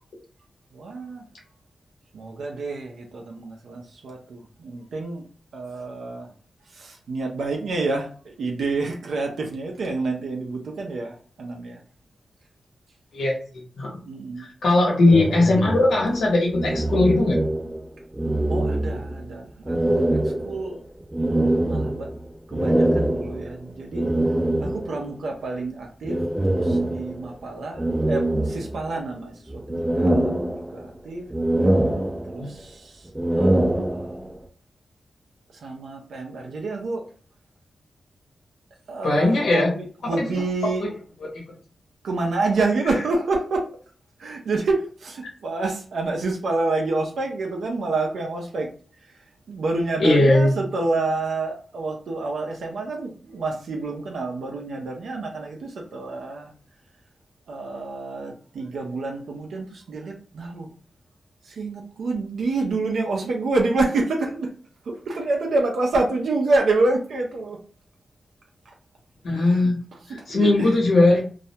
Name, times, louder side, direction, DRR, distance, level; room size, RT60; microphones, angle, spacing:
voice 1, 0.7-1.3 2.1-5.2 5.5-6.3 6.7-11.8 14.0-14.8 18.5-20.9 21.6-22.1 22.5-24.1 24.6-31.3 32.2-33.1 33.4-34.3 35.5-37.1 38.9-40.9 42.0-43.7 44.2-48.7 49.0-56.5 57.5-60.7 61.4-64.5 64.8-67.6 68.7-68.8 69.3-69.6 70.0-70.7, right 3 dB, 85° right, 0.5 m, -28 dB
voice 2, 14.6-17.4 32.4-32.5 39.0-39.7 40.2-40.3 50.0-50.5 69.2-69.8 70.3-71.2, left 2 dB, 80° left, 0.9 m, -18 dB
sound 1, 15.1-17.9 18.1-19.3 19.7-25.1 26.0-27.3 27.8-29.1 29.5-31.0 31.3-32.6 33.1-34.4, right 1 dB, 15° right, 0.3 m, -24 dB
2.3 x 2.1 x 2.7 m
cardioid pair, 65°, 0 cm